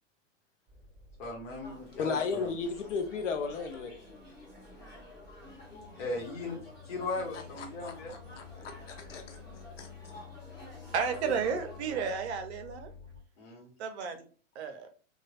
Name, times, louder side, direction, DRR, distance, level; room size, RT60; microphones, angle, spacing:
sound 1, 0.7-13.2, left 6 dB, 15° right, 1.2 m, -52 dB
voice 1, 1.2-2.5 6.0-6.6 6.8-8.2 11.2-11.3 13.4-13.7, left 2 dB, 50° left, 1 dB, 1.1 m, -37 dB
sound 2, 1.6-12.1, left 1 dB, 10° left, 1.5 m, -51 dB
voice 2, 2.0-3.9 7.8-7.9 8.4-9.4 9.8-9.9, left 5 dB, 65° left, 7 dB, 0.6 m, -34 dB
voice 3, 10.9-12.9 13.8-14.3 14.5-14.9, right 6 dB, 55° right, 7 dB, 0.6 m, -32 dB
3.1 x 2.3 x 2.3 m, 0.38 s
figure-of-eight pair, 95°, 39 cm